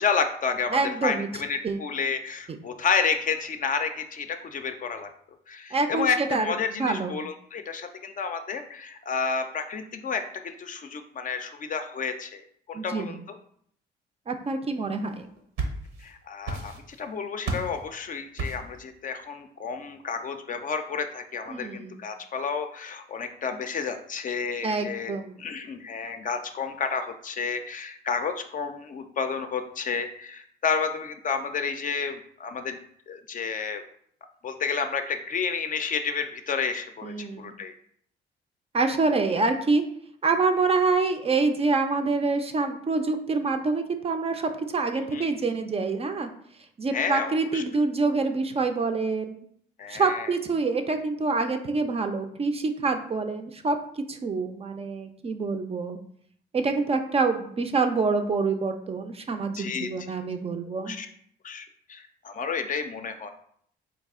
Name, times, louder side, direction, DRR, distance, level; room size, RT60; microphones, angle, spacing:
voice 1, 0.0-5.1 5.5-13.2 16.0-16.7 17.0-25.1 25.4-32.8 33.1-33.8 34.4-37.7 45.1-45.2 46.9-47.6 49.8-50.3 59.6-59.9 60.9-61.1 61.4-63.3, left 5 dB, 40° left, 7 dB, 0.4 m, -30 dB
voice 2, 0.7-1.3 1.6-1.8 5.7-7.1 12.7-13.2 14.3-15.3 21.5-22.0 24.6-25.3 37.0-37.6 38.7-39.8 40.2-46.3 46.8-49.4 49.9-53.8 54.1-56.0 56.5-61.0, right 3 dB, 30° right, 7 dB, 0.4 m, -26 dB
sound 1, 15.2-16.1 16.4-17.1 17.4-17.8 18.4-18.8, right 3 dB, 80° right, 0.8 m, -32 dB
4.0 x 2.3 x 3.5 m, 0.64 s
cardioid pair, 90°, 20 cm